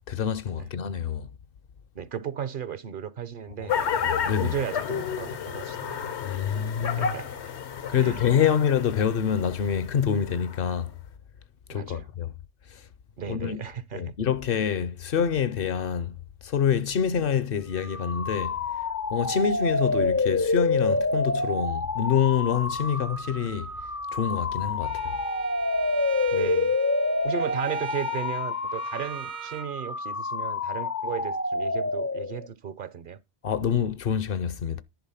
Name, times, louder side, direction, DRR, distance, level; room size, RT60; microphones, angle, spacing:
voice 1, 0.1-1.3 3.6-3.7 4.0-4.6 6.2-7.2 7.9-10.9 11.7-12.3 12.7-12.8 13.2-13.6 13.9-16.1 16.4-18.6 19.1-23.7 24.1-25.2 33.4-34.8, left 8 dB, 60° left, 0.8 m, -26 dB
voice 2, 1.9-3.7 4.4-6.1 7.0-7.3 7.9-8.6 11.7-12.1 13.2-14.1 26.3-26.8 27.2-33.2, right 8 dB, 55° right, 0.7 m, -35 dB
sound 1, 3.7-10.7, left 7 dB, 80° left, 1.2 m, -32 dB
sound 2, 17.8-32.5, left 3 dB, 25° left, 0.4 m, -28 dB
Bowed string instrument, 24.8-29.7, right 11 dB, 80° right, 1.3 m, -41 dB
10.5 x 4.1 x 5.6 m
omnidirectional pair, 1.1 m